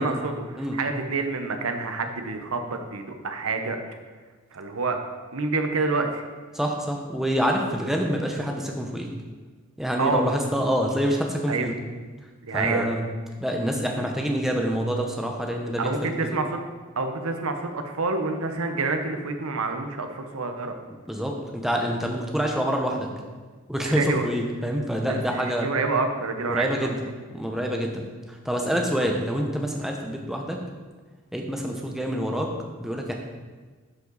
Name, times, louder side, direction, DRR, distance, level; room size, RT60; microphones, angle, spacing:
voice 1, 0.0-3.8 4.5-5.0 5.3-6.3 10.0-10.3 11.5-11.7 12.4-12.9 15.8-16.6 17.0-20.8 23.8-24.3 25.1-27.0, right 3 dB, 75° right, 6 dB, 0.9 m, -27 dB
voice 2, 6.5-9.1 9.8-11.7 12.5-13.0 13.4-15.9 16.2-16.4 21.1-23.1 23.7-25.7 26.5-27.0 27.3-30.6 31.3-32.5 32.8-33.1, equal, ahead, 1 dB, 0.8 m, -26 dB
11.5 x 5.4 x 4.0 m, 1.4 s
head